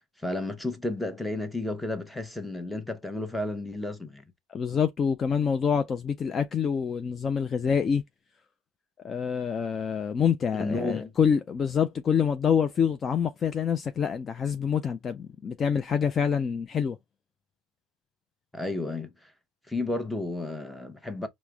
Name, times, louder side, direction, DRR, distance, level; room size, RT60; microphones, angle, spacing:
voice 1, 0.2-4.2 10.5-11.1 18.5-19.3 19.7-21.3, left 2 dB, 5° left, 0.8 m, -32 dB
voice 2, 4.5-8.0 9.0-17.0, left 7 dB, 35° left, 0.4 m, -26 dB
4.6 x 2.1 x 3.3 m
supercardioid pair, 95°, 0 cm